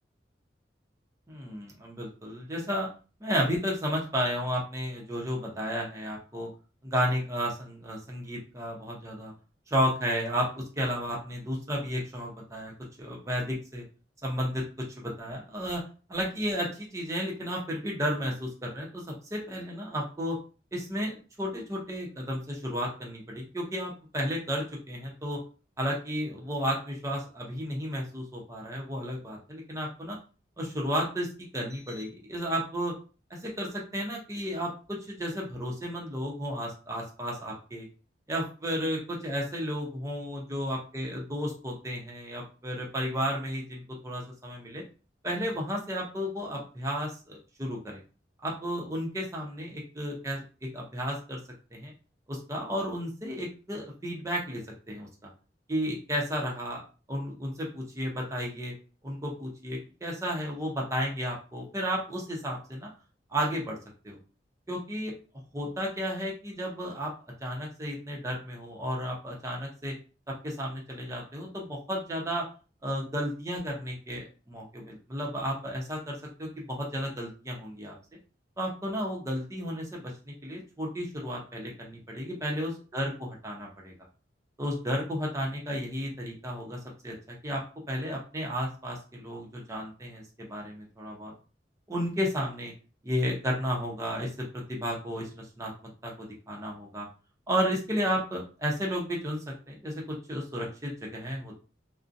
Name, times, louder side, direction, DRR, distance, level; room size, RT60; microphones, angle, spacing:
voice 1, 1.3-2.9 3.2-6.5 6.8-9.3 9.7-12.7 13.0-13.8 14.2-14.6 15.0-15.8 16.1-20.4 20.7-25.4 25.8-30.2 30.6-31.3 31.5-32.9 33.4-37.9 38.3-44.8 45.2-48.0 48.4-50.4 50.7-51.4 51.7-51.9 52.3-54.6 54.9-55.3 55.7-56.8 57.1-58.7 59.0-62.9 63.3-63.8 64.0-64.2 64.7-65.1 65.5-67.1 67.4-69.9 70.4-72.4 72.8-77.9 78.6-80.1 80.4-83.9 84.6-86.8 87.0-87.6 87.9-91.3 91.9-92.7 93.0-94.3 94.7-95.7 96.0-97.1 97.5-101.6, equal, 15° right, -2 dB, 0.6 m, -33 dB
2.5 x 2.1 x 2.5 m, 0.35 s
head